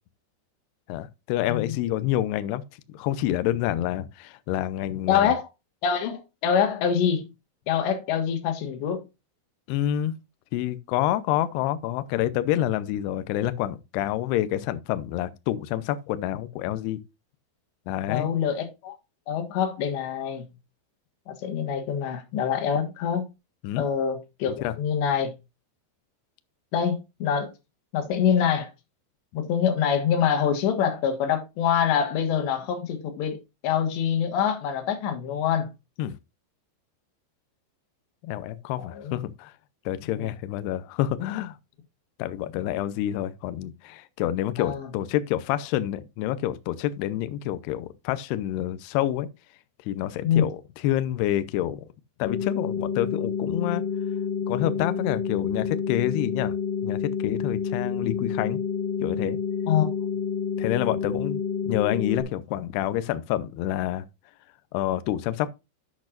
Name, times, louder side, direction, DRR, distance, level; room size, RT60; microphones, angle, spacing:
voice 1, 0.9-2.6 2.9-5.3 9.7-10.2 10.5-17.0 17.9-18.3 23.6-23.9 24.6-24.7 36.0-36.1 38.2-39.5 39.9-41.6 42.2-49.3 49.9-50.6 50.8-51.9 52.2-53.8 54.5-56.6 56.8-58.6 59.0-59.4 60.6-64.1 64.7-65.5, left 13 dB, 90° left, 2.3 m, -28 dB
voice 2, 5.1-5.5 5.8-7.3 7.7-9.1 18.1-18.9 19.3-20.5 21.3-23.3 23.8-25.3 26.7-27.5 27.9-28.7 29.3-33.4 33.6-35.7 38.8-39.2 40.1-40.3 44.6-44.9 50.2-50.5 59.7-59.9, left 8 dB, 70° left, 3.5 m, -25 dB
sound 1, 52.2-62.2, left 6 dB, 30° left, 2.0 m, -29 dB
10.5 x 8.3 x 2.5 m
omnidirectional pair, 5.6 m